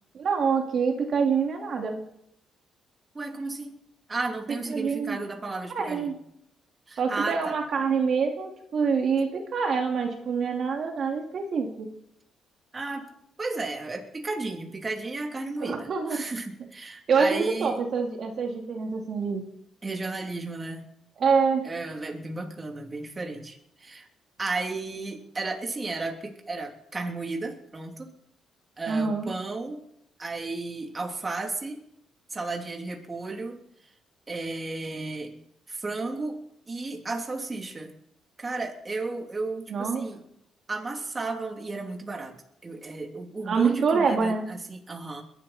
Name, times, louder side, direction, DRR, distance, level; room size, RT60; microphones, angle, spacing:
voice 1, 0.1-2.0 4.5-5.2 5.7-6.1 7.0-11.9 15.6-16.2 17.1-19.5 21.2-21.7 28.9-29.3 39.7-40.0 43.5-44.5, right 5 dB, 55° right, 2 dB, 2.5 m, -26 dB
voice 2, 3.1-3.8 4.1-6.1 6.9-7.5 12.7-13.1 13.4-17.8 19.8-20.9 21.6-24.1 24.4-28.1 28.8-29.8 30.2-31.8 32.3-33.6 34.3-35.4 35.7-36.4 36.7-37.9 38.4-40.2 40.7-42.4 42.6-45.2, right 3 dB, 25° right, 2 dB, 2.9 m, -33 dB
21.5 x 11.5 x 4.3 m, 0.74 s
cardioid pair, 90°, 0 cm